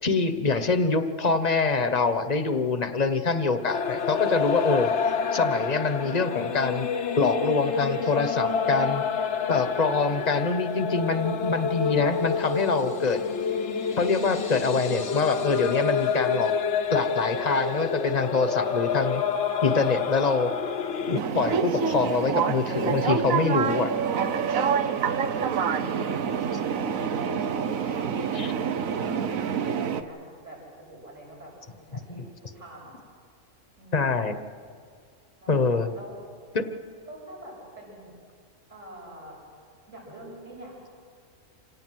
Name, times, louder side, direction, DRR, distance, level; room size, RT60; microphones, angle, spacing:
voice 1, 0.0-6.9 7.2-9.0 9.5-13.2 14.0-16.5 16.9-19.2 19.6-20.5 21.1-23.9 25.8-25.9 28.3-28.5 33.9-34.4 35.5-35.9 36.5-36.7, left 4 dB, 30° left, 9 dB, 1.2 m, -25 dB
sound 1, 3.7-21.2, left 6 dB, 60° left, 1.2 m, -28 dB
sound 2, 21.1-30.0, right 7 dB, 85° right, 1.3 m, -27 dB
voice 2, 27.1-30.2 30.4-32.9 33.8-34.2 35.4-36.2 37.0-38.1 38.7-39.4 39.9-40.9, right 1 dB, 70° right, -5 dB, 7.6 m, -46 dB
27.0 x 18.0 x 7.8 m, 2.2 s
omnidirectional pair, 1.4 m